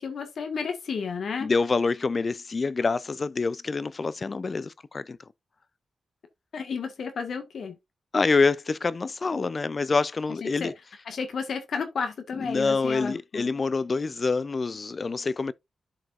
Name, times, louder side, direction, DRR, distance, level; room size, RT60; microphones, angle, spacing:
voice 1, 0.0-1.5 6.5-7.7 10.4-10.7 11.1-13.5, left 5 dB, 75° left, 1.5 m, -32 dB
voice 2, 1.4-5.2 8.1-10.7 12.3-15.5, left 4 dB, 45° left, 0.4 m, -26 dB
11.5 x 5.0 x 2.5 m
cardioid pair, 80°, 0 cm